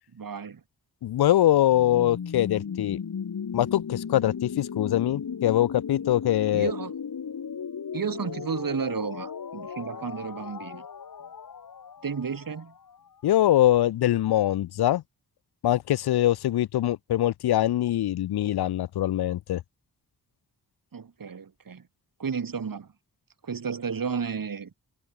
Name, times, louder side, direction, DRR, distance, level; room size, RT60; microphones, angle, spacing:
voice 1, 0.1-0.6 6.5-6.9 7.9-10.9 12.0-12.7 20.9-21.9 22.2-22.9 23.4-24.7, right 6 dB, 60° right, 5.2 m, -32 dB
voice 2, 1.0-3.0 3.5-6.7 13.2-15.0 15.6-19.6, left 13 dB, 85° left, 0.6 m, -23 dB
sound 1, 1.7-13.5, left 7 dB, 60° left, 2.4 m, -36 dB
wide cardioid pair, 100°, 37 cm